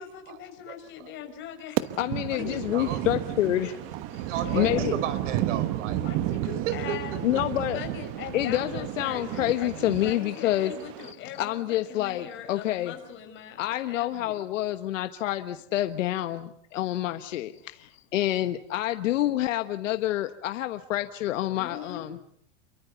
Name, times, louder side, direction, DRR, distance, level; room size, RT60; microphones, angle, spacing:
voice 1, 0.0-1.8 2.3-3.0 4.4-4.9 6.0-7.2 7.7-14.4 21.5-22.0, left 9 dB, 30° left, 5 dB, 5.8 m, -41 dB
voice 2, 0.6-1.1 2.3-3.1 4.3-6.1 6.7-7.4, right 8 dB, 75° right, 14 dB, 5.0 m, -34 dB
sound 1, 1.8-11.1, right 14 dB, 40° right, 1.2 m, -32 dB
voice 3, 2.0-3.7 4.1-4.3 4.5-5.0 7.2-7.8 8.3-10.7 11.4-12.9 13.6-22.2, left 14 dB, 90° left, 8 dB, 1.4 m, -28 dB
28.5 x 23.5 x 7.0 m, 0.68 s
supercardioid pair, 160°, 37 cm